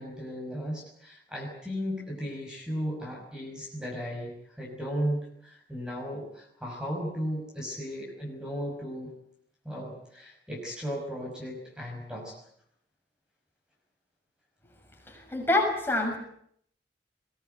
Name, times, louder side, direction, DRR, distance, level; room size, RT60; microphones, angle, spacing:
voice 1, 0.0-9.1 9.6-12.4, equal, 5° right, -1 dB, 5.7 m, -35 dB
voice 2, 15.1-16.2, left 2 dB, 15° left, 1 dB, 6.7 m, -26 dB
22.5 x 18.5 x 9.2 m, 0.68 s
head